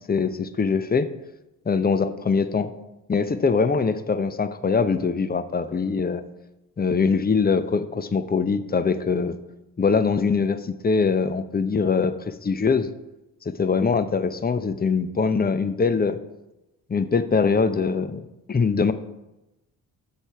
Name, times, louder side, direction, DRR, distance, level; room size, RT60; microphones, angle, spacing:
voice 1, 0.1-1.1 1.7-2.7 3.1-6.2 6.8-9.4 9.8-12.9 13.4-16.2 16.9-18.9, left 5 dB, 25° left, 11 dB, 0.7 m, -23 dB
7.4 x 6.5 x 4.6 m, 0.97 s
hypercardioid pair, 50°, 41 cm